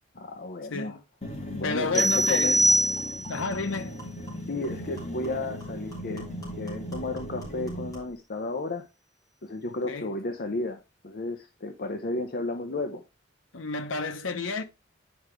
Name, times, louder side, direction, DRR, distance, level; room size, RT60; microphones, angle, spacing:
voice 1, 0.1-1.0 1.5-2.6 4.5-6.3 6.6-8.8 9.4-10.8 11.0-13.0, left 2 dB, 50° left, 0.7 m, -33 dB
voice 2, 0.7-1.0 1.6-2.7 3.3-4.0 9.6-10.2 13.5-14.6, left 3 dB, 85° left, 0.9 m, -31 dB
sound 1, 1.2-8.0, equal, 35° left, 2.1 m, -38 dB
sound 2, 1.2-1.3 1.6-1.8 2.2-8.2, right 1 dB, 20° left, 3.4 m, -50 dB
sound 3, 1.9-3.5, right 1 dB, ahead, 0.5 m, -23 dB
9.5 x 4.9 x 3.3 m
head